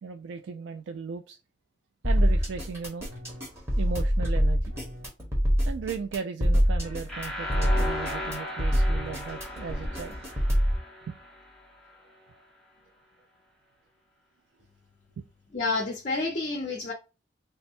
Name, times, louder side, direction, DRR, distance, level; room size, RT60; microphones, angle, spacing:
voice 1, 0.0-1.4 2.0-3.1 3.8-4.7 5.7-10.1 11.1-11.2 15.2-15.3, right 5 dB, 90° right, 0.3 m, -36 dB
sound 1, 2.0-10.8, equal, 15° right, 1.0 m, -25 dB
sound 2, 7.1-12.0, left 1 dB, ahead, 0.6 m, -37 dB
voice 2, 15.5-16.9, left 3 dB, 40° left, 0.5 m, -29 dB
3.3 x 2.1 x 4.2 m
head